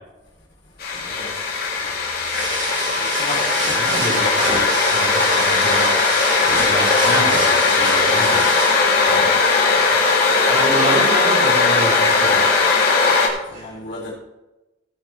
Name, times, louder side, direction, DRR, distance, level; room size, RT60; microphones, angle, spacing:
sound 1, 0.8-13.3, left 4 dB, 55° left, 2.6 m, -18 dB
voice 1, 0.9-1.4 3.0-3.5 6.4-6.7 9.7-10.0 13.5-14.1, left 2 dB, 75° left, -6 dB, 4.1 m, -35 dB
sound 2, 2.2-8.9, right 4 dB, 80° right, 2.9 m, -28 dB
voice 2, 3.7-6.1 6.6-8.5 9.1-9.3 10.4-12.4 13.5-13.7, right 1 dB, 45° right, -4 dB, 4.7 m, -27 dB
17.5 x 8.4 x 3.5 m, 1.0 s
head